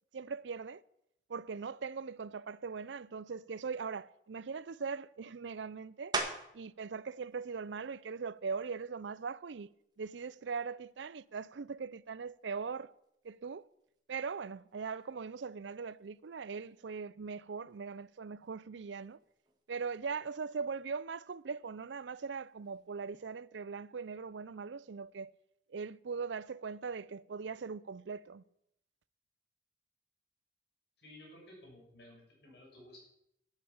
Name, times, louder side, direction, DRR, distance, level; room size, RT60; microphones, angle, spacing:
voice 1, 0.1-0.8 1.3-6.1 6.5-9.7 10.0-12.9 13.2-13.7 14.1-19.2 19.7-25.3 25.7-28.4, right 5 dB, 80° right, 0.5 m, -40 dB
sound 1, 6.1-6.7 7.3-11.7 12.2-17.4 17.7-23.3, right 3 dB, 25° right, 1.9 m, -46 dB
voice 2, 31.0-33.0, left 1 dB, 65° left, 7.0 m, -55 dB
12.5 x 9.1 x 8.6 m
head